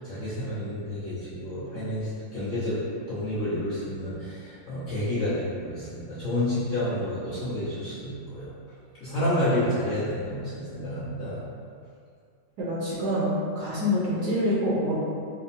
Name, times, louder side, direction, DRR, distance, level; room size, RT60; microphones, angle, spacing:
voice 1, 0.0-2.8 3.1-8.5 9.0-11.4, left 1 dB, 50° left, -13 dB, 1.2 m, -29 dB
voice 2, 12.6-14.9, left 1 dB, 70° right, -7 dB, 1.0 m, -26 dB
4.3 x 2.1 x 2.6 m, 2.2 s
omnidirectional pair, 2.0 m